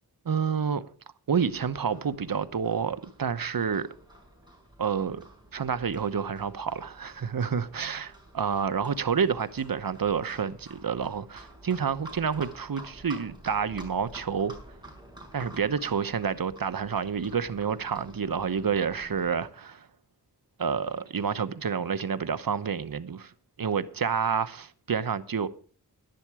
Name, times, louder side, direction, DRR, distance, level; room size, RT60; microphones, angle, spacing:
voice 1, 0.2-0.8 1.3-3.9 4.8-5.2 5.5-14.5 15.3-19.9 20.6-23.3 23.6-25.5, right 6 dB, 60° right, 1.0 m, -29 dB
Livestock farm animals working animals, 1.4-19.5, right 1 dB, 10° right, 5.5 m, -50 dB
12.0 x 10.5 x 4.9 m
wide cardioid pair, 65°, 40 cm